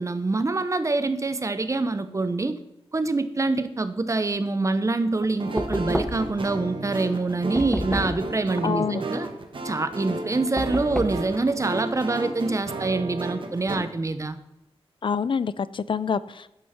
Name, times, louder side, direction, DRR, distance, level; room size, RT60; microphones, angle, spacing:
voice 1, 0.0-2.6 2.9-9.3 9.6-14.4, right 3 dB, 30° right, 11 dB, 0.8 m, -25 dB
sound 1, 5.4-13.8, right 2 dB, 55° right, 1.6 m, -33 dB
Knock, 5.6-6.4 7.6-8.3 10.6-11.3, equal, ahead, 0.9 m, -30 dB
voice 2, 8.6-9.0 15.0-16.5, left 6 dB, 55° left, 17 dB, 0.5 m, -26 dB
11.0 x 6.2 x 5.8 m, 0.88 s
wide cardioid pair, 90°, 10 cm